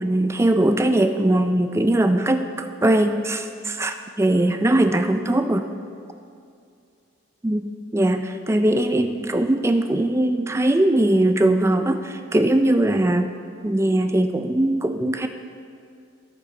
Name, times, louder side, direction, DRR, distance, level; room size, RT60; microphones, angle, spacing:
voice 1, 0.0-5.7 7.4-13.3 13.6-15.3, right 1 dB, 15° right, 7 dB, 0.4 m, -20 dB
14.0 x 6.2 x 3.8 m, 2.4 s
head